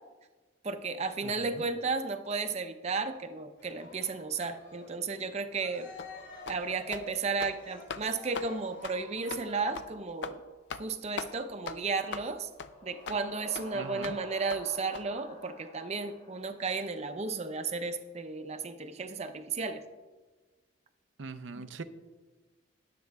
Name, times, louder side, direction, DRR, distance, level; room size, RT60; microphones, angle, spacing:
voice 1, 0.6-5.9 6.5-10.4 10.8-12.5 12.8-19.8 21.5-21.7, right 4 dB, 35° right, 8 dB, 0.6 m, -34 dB
voice 2, 1.2-1.6 13.7-14.2 21.2-21.8, right 4 dB, 90° right, 11 dB, 0.6 m, -42 dB
Cheering, 3.6-10.0, left 1 dB, 85° left, 2.5 m, -49 dB
sound 1, 6.0-6.1 6.5-6.6 6.9-7.1 7.3-7.6 7.9-8.0 8.3-8.5 8.8-9.0 9.3-9.4 9.7-9.9 10.2-10.4 10.7-10.9 11.2-11.3 11.7-11.8 12.1-12.3 12.6-12.7 13.1-13.2 13.5-13.7 14.0-14.2 14.5-14.6 14.9-15.0, left 5 dB, 65° left, 0.5 m, -39 dB
sound 2, 12.5-17.1, left 1 dB, 45° left, 2.7 m, -48 dB
20.0 x 7.6 x 2.3 m, 1.3 s
head